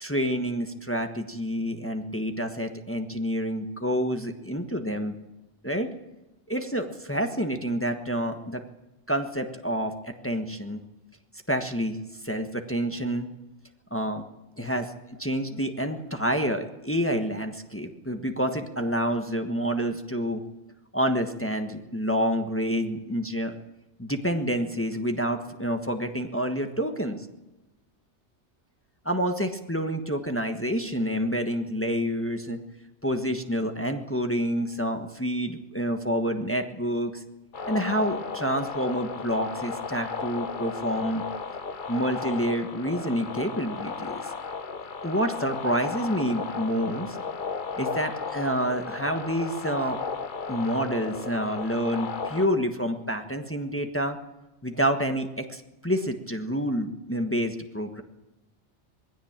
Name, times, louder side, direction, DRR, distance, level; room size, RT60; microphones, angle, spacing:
voice 1, 0.0-5.1 5.6-5.9 6.5-8.6 9.1-10.8 11.5-12.0 12.2-13.3 13.9-14.2 14.6-14.9 15.2-20.4 20.9-23.5 24.0-27.2 29.0-32.6 33.0-37.2 37.7-41.2 41.9-44.2 45.0-47.2 47.8-50.0 50.5-54.2 54.6-58.0, equal, 10° left, 5 dB, 1.4 m, -28 dB
sound 1, 37.5-52.5, left 5 dB, 45° left, 1.1 m, -34 dB
20.5 x 16.5 x 8.9 m, 1.0 s
omnidirectional pair, 1.2 m